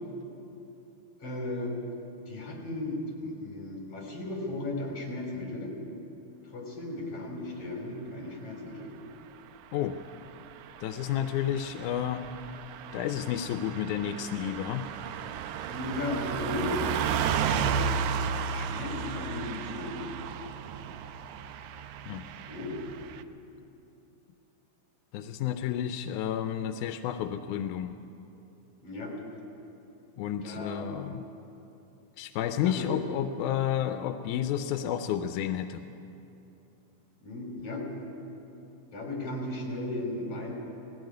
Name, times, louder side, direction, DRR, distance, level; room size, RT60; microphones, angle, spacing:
voice 1, 1.2-1.7 2.3-5.7 6.5-8.9 15.6-16.9 17.4-17.9 18.5-20.0 22.4-22.8 28.8-29.1 30.2-31.0 32.6-32.9 37.2-37.8 38.9-40.5, left 2 dB, 50° left, 0 dB, 4.9 m, -36 dB
Car passing by / Truck, 10.2-23.2, right 7 dB, 80° right, 2.1 m, -34 dB
voice 2, 10.8-12.2 12.9-14.9 22.1-22.2 25.1-27.9 30.2-31.2 32.2-35.8, left 10 dB, 90° left, 8 dB, 2.1 m, -31 dB
18.5 x 15.5 x 9.5 m, 2.9 s
omnidirectional pair, 3.4 m